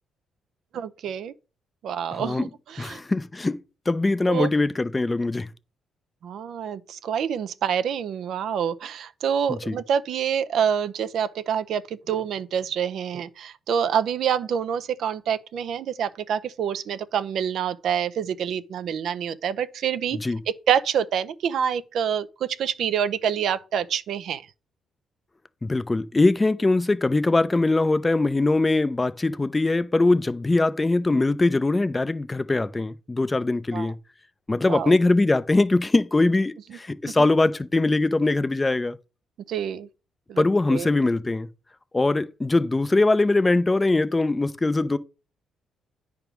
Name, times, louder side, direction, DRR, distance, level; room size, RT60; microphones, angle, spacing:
voice 1, 0.7-1.3 1.8-3.0 4.3-4.5 6.2-20.2 20.7-22.3 22.6-24.4 33.7-33.9 34.7-34.9 37.2-37.3 39.5-39.9 40.3-40.4 40.7-40.9, right 8 dB, 70° right, 0.5 m, -27 dB
voice 2, 2.1-2.5 2.8-3.6 3.9-5.5 9.5-9.8 20.1-20.4 25.6-34.0 34.5-39.0 40.4-41.5 41.9-45.0, left 2 dB, 20° left, 0.5 m, -22 dB
9.1 x 3.5 x 6.0 m
cardioid pair, 90°, 0 cm